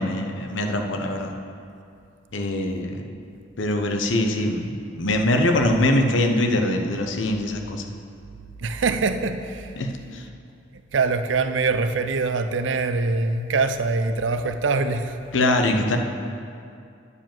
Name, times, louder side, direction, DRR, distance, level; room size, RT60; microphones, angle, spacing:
voice 1, 0.0-1.4 2.3-3.1 3.6-7.8 9.8-10.3 15.3-16.0, left 1 dB, 80° left, 4 dB, 0.8 m, -23 dB
voice 2, 8.6-9.7 10.9-15.2, right 4 dB, 75° right, 9 dB, 0.5 m, -23 dB
9.7 x 4.8 x 7.4 m, 2.5 s
head